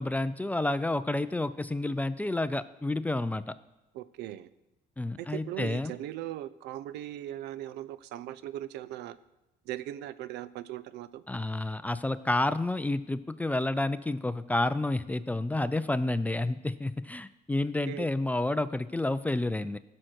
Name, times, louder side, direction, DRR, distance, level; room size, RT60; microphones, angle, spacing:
voice 1, 0.0-3.5 5.0-5.9 11.3-19.8, left 2 dB, 10° left, 14 dB, 0.3 m, -30 dB
voice 2, 3.9-4.5 5.2-9.2 9.7-11.2 17.9-18.1, right 13 dB, 85° right, 16 dB, 0.5 m, -39 dB
15.5 x 6.4 x 4.5 m, 0.98 s
cardioid pair, 110°, 17 cm